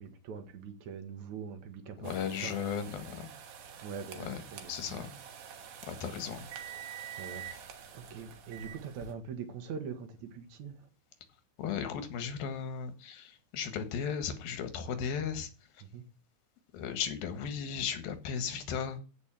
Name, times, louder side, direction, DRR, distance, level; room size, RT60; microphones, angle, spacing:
voice 1, 0.0-2.6 3.8-5.0 5.8-5.9 7.1-7.5 7.9-10.9 15.8-16.0, right 6 dB, 60° right, 2.5 m, -43 dB
voice 2, 2.0-3.3 4.2-5.2 5.9-6.5 11.6-15.5 15.7-15.8 16.7-19.0, left 7 dB, 85° left, 3.4 m, -36 dB
sound 1, 2.0-9.1, right 8 dB, 75° right, 3.3 m, -47 dB
15.5 x 5.3 x 7.5 m
omnidirectional pair, 4.1 m